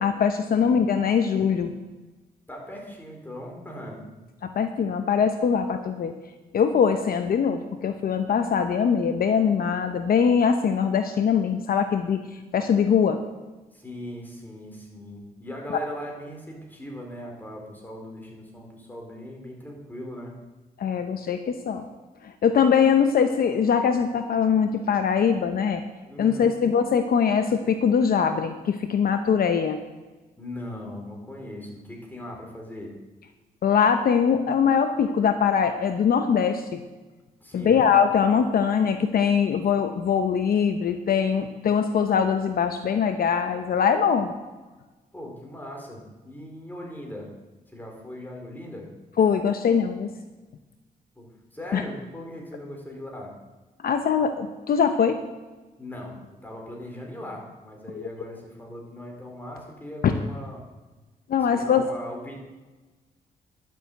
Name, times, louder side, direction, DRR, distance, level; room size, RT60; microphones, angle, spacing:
voice 1, 0.0-1.7 4.4-6.1 6.5-12.2 12.5-13.2 20.8-21.8 22.2-25.8 26.2-29.8 33.6-36.8 37.5-44.3 49.2-50.1 51.7-51.8 53.8-55.2 57.9-58.0 60.0-60.1 61.3-61.8, left 7 dB, 65° left, 7 dB, 0.9 m, -22 dB
voice 2, 2.5-4.2 13.7-20.4 26.1-26.5 30.4-32.9 37.4-37.8 45.1-47.3 47.7-48.9 51.2-53.3 55.8-60.6 61.4-62.4, left 1 dB, 10° left, 0 dB, 4.6 m, -39 dB
11.5 x 7.4 x 8.1 m, 1.2 s
cardioid pair, 85°, 17 cm